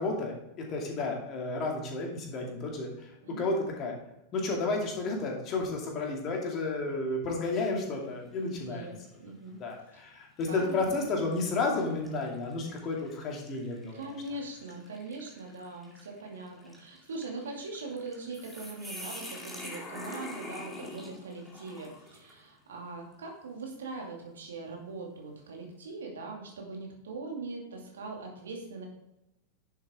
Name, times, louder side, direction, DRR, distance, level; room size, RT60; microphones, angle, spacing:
voice 1, 0.0-4.0 4.3-8.9 9.6-14.1, left 3 dB, 35° left, 0 dB, 2.6 m, -32 dB
sound 1, 7.7-8.0 8.5-8.6 9.6-9.8 10.4-22.4, left 1 dB, 5° left, 2.3 m, -47 dB
voice 2, 8.5-9.6 10.5-10.9 13.9-28.9, right 3 dB, 65° right, 0 dB, 2.4 m, -41 dB
10.5 x 7.2 x 3.7 m, 0.87 s
figure-of-eight pair, 90°, 0 cm